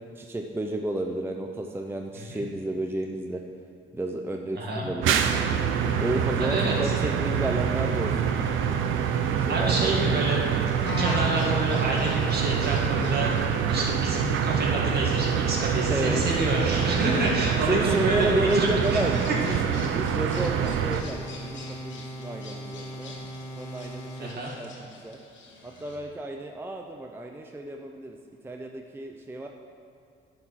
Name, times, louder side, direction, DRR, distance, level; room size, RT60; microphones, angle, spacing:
voice 1, 0.2-3.4 3.9-5.3 6.0-8.3 9.3-10.2 15.9-16.2 17.1-17.3 17.7-23.1 23.6-25.2 25.6-28.2 28.4-29.5, right 1 dB, 10° right, 2 dB, 0.5 m, -31 dB
voice 2, 2.1-2.5 4.5-4.9 6.4-6.9 9.5-10.4 11.0-13.3 13.6-19.0 19.3-19.6 24.2-24.5, right 2 dB, 55° right, -3 dB, 2.1 m, -28 dB
sound 1, 5.0-21.0, right 8 dB, 80° right, 0.5 m, -26 dB
sound 2, 5.3-24.4, right 1 dB, 35° left, 1.6 m, -39 dB
sound 3, 10.8-26.0, left 2 dB, 70° left, 1.5 m, -43 dB
10.5 x 4.6 x 5.6 m, 2.5 s
cardioid pair, 90°, 20 cm